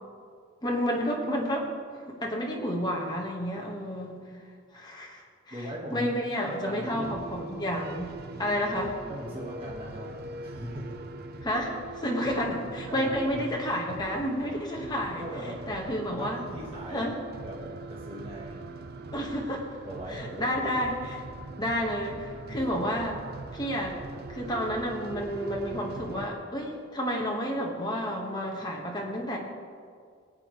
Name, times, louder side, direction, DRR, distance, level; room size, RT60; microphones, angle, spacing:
voice 1, 0.6-1.7 2.1-4.2 4.7-5.5 5.9-9.0 11.4-15.3 15.7-16.4 16.9-17.1 19.1-19.7 20.1-21.2 21.6-23.2 23.5-24.0 24.3-29.4, equal, 20° left, 0 dB, 1.5 m, -30 dB
voice 2, 5.5-7.1 9.1-10.1 10.4-11.0 12.8-13.5 15.2-15.7 16.2-17.1 17.4-18.7 19.8-20.6 22.4-22.6, equal, 30° right, -4 dB, 1.6 m, -39 dB
sound 1, 6.8-26.3, right 2 dB, 50° right, 0.6 m, -42 dB
18.0 x 8.7 x 3.2 m, 2.1 s
head